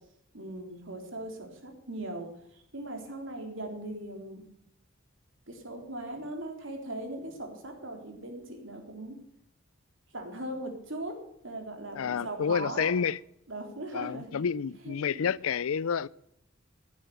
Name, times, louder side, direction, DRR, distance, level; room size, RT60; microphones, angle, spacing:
voice 1, 0.3-4.4 5.5-9.2 10.1-11.1 11.4-12.9 13.5-14.3 14.8-15.3, right 1 dB, 65° right, 3.6 m, -39 dB
voice 2, 11.9-13.2 13.9-16.1, left 6 dB, 90° left, 0.4 m, -29 dB
15.0 x 9.8 x 6.5 m
head